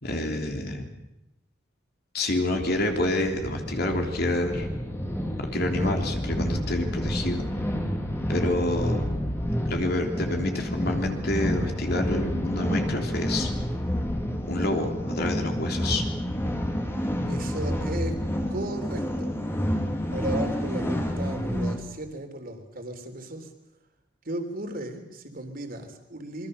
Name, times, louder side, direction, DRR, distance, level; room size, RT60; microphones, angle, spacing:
voice 1, 0.0-0.9 2.1-4.7 5.4-7.4 8.3-9.1 9.7-13.5 14.5-16.0, left 1 dB, 55° left, 3 dB, 3.3 m, -28 dB
sound 1, 2.3-21.8, equal, 15° left, 2.7 m, -29 dB
voice 2, 17.3-18.2 18.5-19.6 20.1-23.5 24.3-26.5, right 1 dB, 50° right, 5 dB, 3.6 m, -35 dB
26.5 x 23.0 x 6.7 m, 0.93 s
head